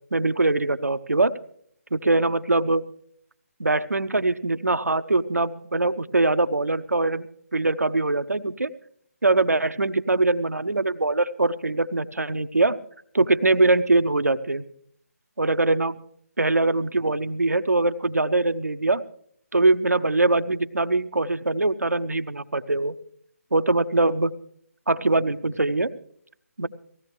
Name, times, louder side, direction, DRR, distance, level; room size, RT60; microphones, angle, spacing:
voice 1, 0.1-1.3 1.9-2.8 3.6-7.3 7.5-8.7 9.2-12.8 13.1-14.6 15.4-16.0 16.4-19.0 19.5-22.9 23.5-24.3 24.9-25.9 26.6-26.7, right 2 dB, 85° right, 12 dB, 0.8 m, -22 dB
19.5 x 16.0 x 3.1 m, 0.64 s
figure-of-eight pair, 150°, 8 cm